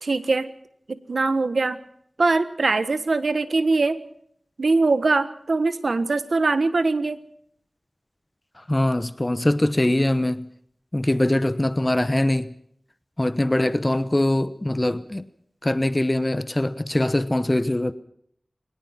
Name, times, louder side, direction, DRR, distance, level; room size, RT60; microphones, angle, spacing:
voice 1, 0.0-0.5 0.9-1.8 2.2-4.0 4.6-7.2, right 3 dB, 80° right, 12 dB, 1.4 m, -22 dB
voice 2, 8.7-10.5 10.9-12.5 13.2-15.2 15.6-17.9, left 1 dB, 25° left, 14 dB, 1.0 m, -22 dB
23.0 x 20.0 x 5.9 m, 0.67 s
wide cardioid pair, 60°, 0 cm